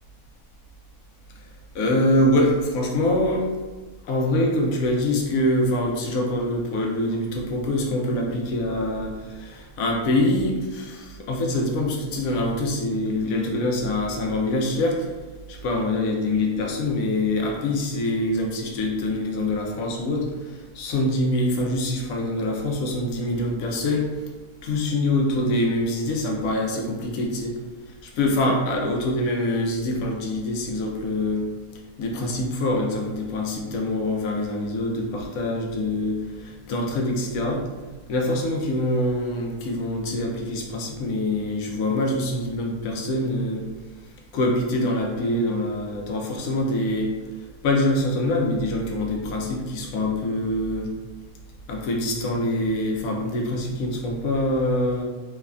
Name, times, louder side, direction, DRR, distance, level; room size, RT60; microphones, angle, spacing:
voice 1, 1.7-3.5 4.0-15.1 15.5-24.1 24.6-27.5 28.0-31.5 32.0-37.6 38.1-43.7 44.3-47.2 47.6-50.9 51.7-55.0, left 1 dB, 70° left, 0 dB, 1.0 m, -24 dB
3.1 x 2.1 x 2.4 m, 1.3 s
omnidirectional pair, 1.6 m